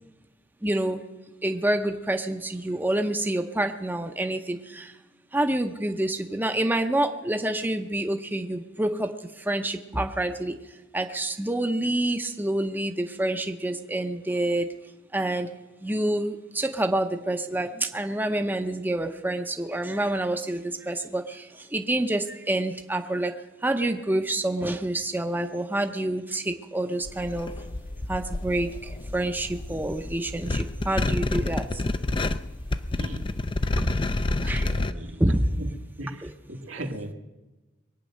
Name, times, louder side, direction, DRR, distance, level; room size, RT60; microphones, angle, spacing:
voice 1, 0.6-1.0 1.4-4.9 5.3-10.6 10.9-14.7 15.1-15.5 15.8-27.5 28.1-31.8 33.8-33.9 34.5-35.4 36.2-36.3, right 1 dB, 10° right, 6 dB, 0.7 m, -27 dB
sound 1, 27.1-34.9, left 2 dB, 25° left, 0.5 m, -29 dB
voice 2, 34.4-35.7 36.0-36.2 36.5-37.1, right 1 dB, 90° right, 3 dB, 1.9 m, -37 dB
22.0 x 9.1 x 6.4 m, 1.1 s
head